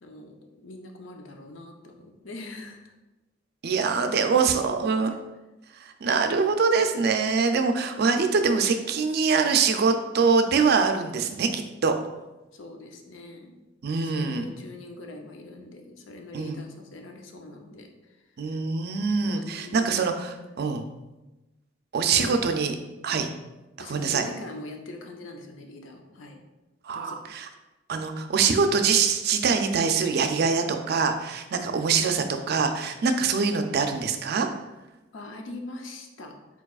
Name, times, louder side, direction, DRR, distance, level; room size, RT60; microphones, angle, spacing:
voice 1, 0.0-2.9 3.9-5.2 12.5-13.6 14.0-17.9 18.2-18.6 19.2-20.0 20.4-20.7 22.0-22.4 23.8-26.4 26.9-27.2 31.5-32.0 35.1-36.6, left 2 dB, 80° left, 3 dB, 0.6 m, -42 dB
voice 2, 3.6-5.1 5.8-12.0 13.8-14.5 16.3-16.6 18.4-20.9 21.9-22.7 23.0-23.3 23.9-24.2 26.8-27.5 27.9-34.5, right 5 dB, 55° right, 6 dB, 0.4 m, -24 dB
4.6 x 4.1 x 2.4 m, 1.0 s
head